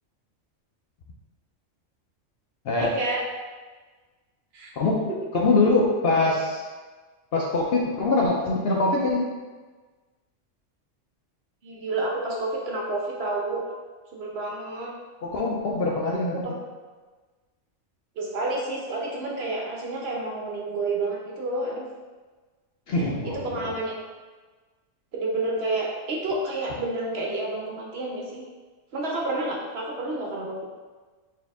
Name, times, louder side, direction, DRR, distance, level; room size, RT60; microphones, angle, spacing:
voice 1, 2.8-3.2 4.5-4.7 11.6-13.6 14.1-14.9 16.3-16.4 18.2-21.9 23.2-24.0 25.1-28.4 28.9-30.6, right 2 dB, 60° right, -2 dB, 0.9 m, -29 dB
voice 2, 4.8-6.7 7.3-9.2 15.2-16.5 22.9-23.7, left 3 dB, 60° left, -2 dB, 0.7 m, -23 dB
4.3 x 2.8 x 3.4 m, 1.3 s
omnidirectional pair, 1.3 m